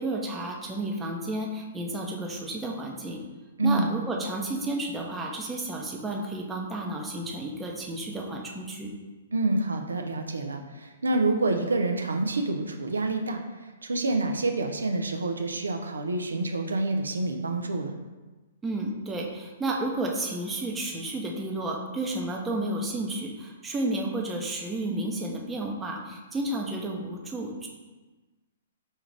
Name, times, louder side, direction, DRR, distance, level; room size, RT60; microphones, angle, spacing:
voice 1, 0.0-3.2 3.6-8.9 18.6-27.7, right 2 dB, 10° right, -1 dB, 0.6 m, -32 dB
voice 2, 3.6-3.9 9.3-18.0, right 2 dB, 90° right, 4 dB, 0.4 m, -27 dB
5.2 x 2.4 x 3.2 m, 1.2 s
hypercardioid pair, 125°, 0 cm